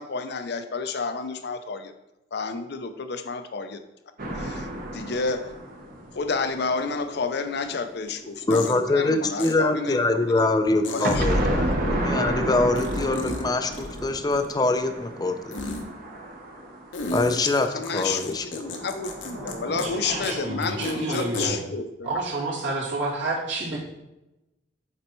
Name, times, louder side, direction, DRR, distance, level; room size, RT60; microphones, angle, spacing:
voice 1, 0.0-1.9 2.3-3.8 4.4-4.7 4.9-5.5 6.1-10.1 10.4-10.5 10.9-11.7 17.4-22.1, left 4 dB, 60° left, 9 dB, 0.6 m, -30 dB
sound 1, 4.2-7.0 11.0-17.3 18.6-21.0, right 1 dB, 50° right, 1.0 m, -31 dB
sound 2, 6.8-12.7 13.2-13.3, equal, 10° right, 1.0 m, -48 dB
sound 3, 7.6-7.7 8.5-8.8 9.4-9.5 10.8-11.2 12.8-13.4 13.7-14.6 15.5-15.8 16.9-19.5 19.8-19.9 20.2-20.3 20.6-21.5, left 2 dB, 80° left, 0.9 m, -33 dB
voice 2, 8.5-15.6 17.1-17.7 17.9-18.7, left 2 dB, 20° left, 8 dB, 0.5 m, -24 dB
voice 3, 19.8-21.6 22.0-23.8, right 2 dB, 75° right, -6 dB, 2.3 m, -29 dB
7.5 x 4.2 x 4.5 m, 0.96 s
head